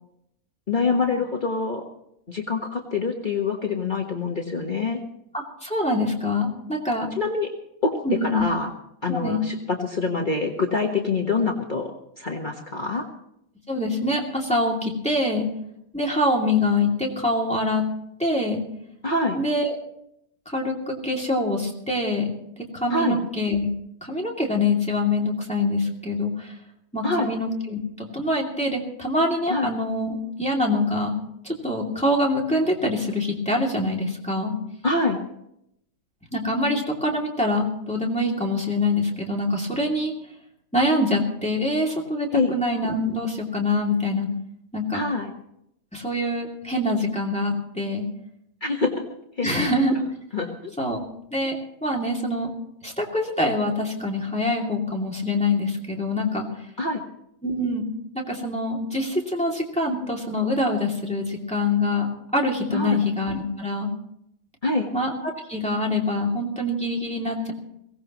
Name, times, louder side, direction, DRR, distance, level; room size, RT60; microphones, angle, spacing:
voice 1, 0.7-1.8 2.3-5.0 7.2-7.5 7.8-8.7 9.0-11.9 12.2-13.0 19.0-19.4 22.9-23.2 27.0-27.3 29.5-29.7 34.8-35.2 42.3-42.5 44.9-45.3 48.6-49.0 49.4-49.7 50.3-50.7 56.8-57.0 62.7-63.0 64.6-64.9, left 3 dB, 35° left, 1 dB, 1.4 m, -25 dB
voice 2, 5.3-7.1 8.0-8.4 9.1-9.5 13.7-15.5 15.9-17.8 18.2-18.6 19.3-19.8 20.5-22.3 22.6-23.7 24.0-26.5 26.9-31.1 31.4-34.5 36.3-40.1 40.7-44.3 44.7-45.0 45.9-48.0 49.4-49.9 50.8-51.0 51.3-52.5 52.8-56.5 57.4-57.9 58.1-63.9 64.9-67.5, left 2 dB, 5° left, -1 dB, 2.4 m, -25 dB
22.5 x 17.5 x 3.0 m, 0.77 s
omnidirectional pair, 1.6 m